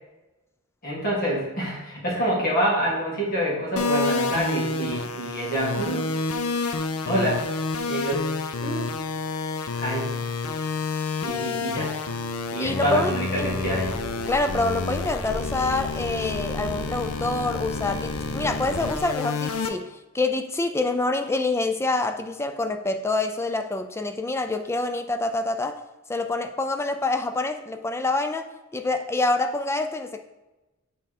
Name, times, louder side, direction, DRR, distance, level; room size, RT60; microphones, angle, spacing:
voice 1, 0.8-6.1 7.0-7.5 7.8-8.3 8.6-8.9 9.7-10.1 11.2-11.9 12.5-13.9, right 1 dB, 40° left, -5 dB, 2.1 m, -26 dB
sound 1, 3.8-19.7, left 4 dB, 85° left, 0.6 m, -29 dB
voice 2, 12.6-13.5 14.3-25.8 26.1-28.5 28.7-30.2, left 2 dB, 10° left, 7 dB, 0.4 m, -26 dB
sound 2, 13.3-19.0, equal, 15° right, 2.0 m, -36 dB
7.4 x 3.6 x 4.2 m, 1.0 s
head